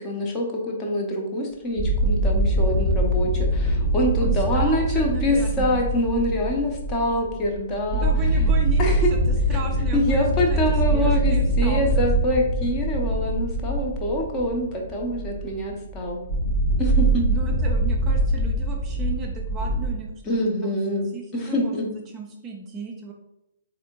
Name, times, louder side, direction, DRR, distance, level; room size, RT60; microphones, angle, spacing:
voice 1, 0.0-8.1 8.8-9.1 9.9-16.2 16.8-17.3 20.3-21.9, left 1 dB, 20° left, 0 dB, 0.7 m, -25 dB
sound 1, 1.8-19.9, right 1 dB, 50° left, 0.9 m, -23 dB
voice 2, 4.2-5.9 7.9-10.6 10.9-11.8 12.2-12.4 17.3-20.1 20.6-20.8 21.1-23.1, right 5 dB, 20° right, 0 dB, 0.4 m, -35 dB
4.1 x 2.6 x 2.9 m, 0.88 s
figure-of-eight pair, 120°, 0 cm